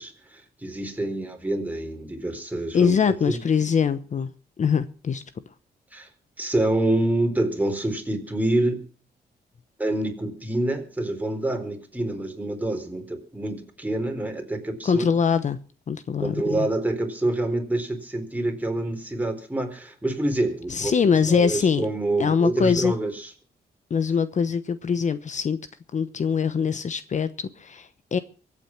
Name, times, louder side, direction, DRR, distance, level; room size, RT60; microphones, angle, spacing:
voice 1, 0.0-3.4 5.9-6.1 6.4-8.8 9.8-15.1 16.2-23.3, right 1 dB, 10° right, 4 dB, 4.2 m, -27 dB
voice 2, 2.7-4.3 4.6-5.2 14.8-15.6 15.9-16.7 20.7-21.8 22.2-22.9 23.9-25.6 25.9-28.2, left 6 dB, 45° left, 13 dB, 1.0 m, -23 dB
23.5 x 8.8 x 5.9 m, 0.40 s
cardioid pair, 100°, 17 cm